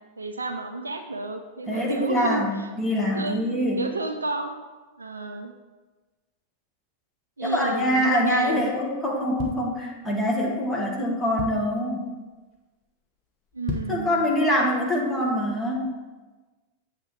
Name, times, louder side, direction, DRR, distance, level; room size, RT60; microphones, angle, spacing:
voice 1, 0.2-2.7 3.1-3.4 3.8-4.6 5.0-5.5 7.4-8.7 13.5-14.2, right 3 dB, 80° right, 6 dB, 0.4 m, -31 dB
voice 2, 1.7-3.8 7.4-12.1 13.9-15.9, equal, 10° left, -2 dB, 1.3 m, -24 dB
sound 1, 9.1-10.3 10.8-10.9 11.1-11.9 12.3-12.6 12.9-13.0 13.5-14.1 14.5-14.6, left 5 dB, 35° left, 0.9 m, -35 dB
7.9 x 2.8 x 4.6 m, 1.2 s
figure-of-eight pair, 90°, 0 cm